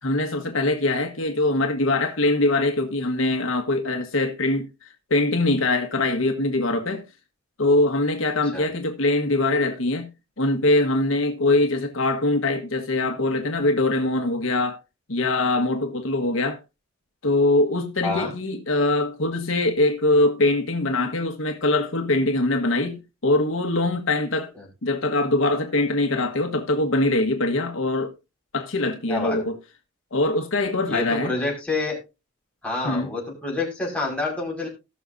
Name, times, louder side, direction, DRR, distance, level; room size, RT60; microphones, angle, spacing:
voice 1, 0.0-4.7 5.1-7.0 7.6-10.1 10.4-14.8 15.1-16.6 17.2-24.5 24.8-28.1 28.5-29.6 30.1-31.3 32.8-33.1, left 2 dB, 75° left, 1.5 m, -22 dB
voice 2, 29.1-29.4 30.9-32.0 32.6-34.7, left 3 dB, 5° left, 5.3 m, -28 dB
19.0 x 6.4 x 2.7 m
head